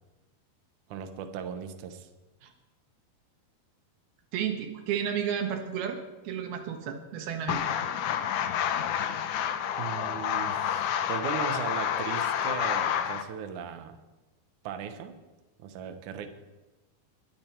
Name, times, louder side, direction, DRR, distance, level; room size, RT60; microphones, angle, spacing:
voice 1, 0.9-2.1 9.8-14.0 14.6-15.1 15.6-16.3, right 7 dB, 65° right, 6 dB, 2.2 m, -37 dB
voice 2, 4.3-7.7, right 8 dB, 80° right, 4 dB, 3.3 m, -32 dB
sound 1, 7.5-13.2, left 9 dB, 70° left, 2.1 m, -29 dB
21.5 x 11.0 x 4.5 m, 1.1 s
omnidirectional pair, 4.4 m